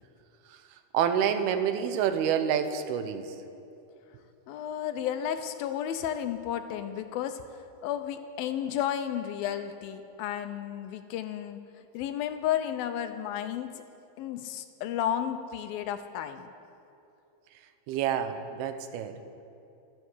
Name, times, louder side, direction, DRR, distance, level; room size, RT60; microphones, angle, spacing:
voice 1, 0.9-3.3 17.9-19.2, right 8 dB, 85° right, 8 dB, 2.8 m, -28 dB
voice 2, 4.5-11.6 11.9-13.8 14.2-16.5, left 10 dB, 80° left, 9 dB, 2.4 m, -32 dB
13.0 x 12.5 x 8.3 m, 2.7 s
omnidirectional pair, 4.5 m